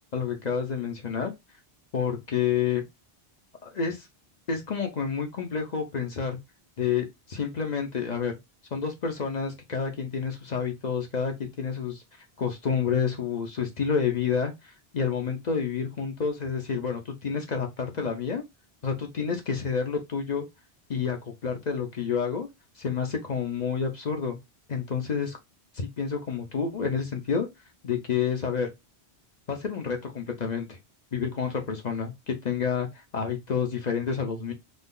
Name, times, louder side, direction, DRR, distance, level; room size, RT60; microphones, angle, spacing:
voice 1, 0.1-1.3 1.9-2.8 3.6-4.1 4.5-6.4 6.8-8.3 8.7-12.0 12.4-18.4 18.8-20.5 20.9-22.5 22.8-24.4 24.7-25.4 25.7-27.5 27.8-28.7 29.5-30.8 31.1-32.9 33.1-34.5, left 6 dB, 45° left, 0.7 m, -29 dB
2.6 x 2.3 x 3.6 m
omnidirectional pair, 1.1 m